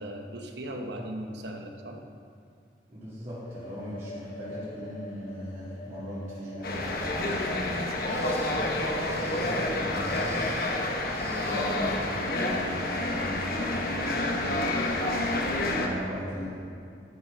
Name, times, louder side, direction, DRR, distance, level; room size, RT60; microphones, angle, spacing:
voice 1, 0.0-2.0 8.0-8.3 15.8-15.9, right 1 dB, 75° right, 3 dB, 1.0 m, -38 dB
voice 2, 2.9-7.7 8.4-10.4 11.1-14.9 15.5-16.6, equal, 45° right, -14 dB, 2.8 m, -39 dB
sound 1, 3.3-10.9, left 2 dB, 40° left, 1.8 m, -46 dB
sound 2, 6.6-15.9, left 2 dB, 55° left, 1.1 m, -29 dB
sound 3, 8.0-10.8 11.1-12.4 12.8-12.9 13.6-13.8 14.3-14.4, right 1 dB, 15° right, 0.9 m, -46 dB
13.0 x 6.0 x 5.4 m, 2.4 s
head